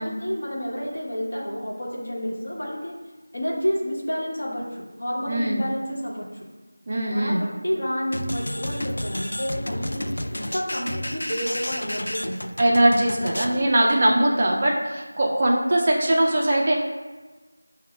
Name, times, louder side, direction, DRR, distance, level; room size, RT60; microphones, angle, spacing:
voice 1, 0.0-2.9 3.3-6.3 7.1-10.3 10.5-12.5 13.2-14.1, equal, 55° left, -4 dB, 1.0 m, -30 dB
voice 2, 5.3-5.6 6.9-7.4 12.6-16.8, right 1 dB, 20° right, -2 dB, 0.3 m, -21 dB
sound 1, 8.1-13.6, left 1 dB, 85° left, 0.3 m, -31 dB
5.1 x 2.0 x 3.1 m, 1.3 s
figure-of-eight pair, 180°, 0 cm